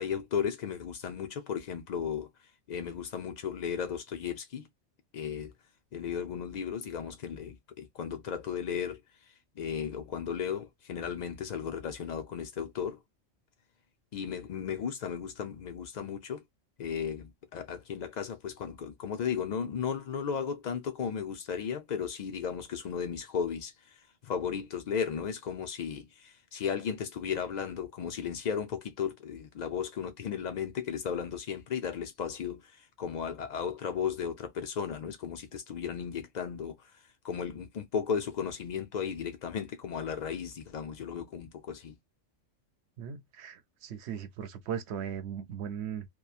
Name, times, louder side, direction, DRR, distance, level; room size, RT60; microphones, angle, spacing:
voice 1, 0.0-2.3 2.7-4.7 5.1-5.5 5.9-9.0 9.6-13.0 14.1-16.4 16.8-36.8 37.2-41.9, left 7 dB, 80° left, 0.4 m, -35 dB
voice 2, 43.0-46.1, right 8 dB, 65° right, 0.8 m, -38 dB
2.9 x 2.2 x 2.3 m
omnidirectional pair, 1.3 m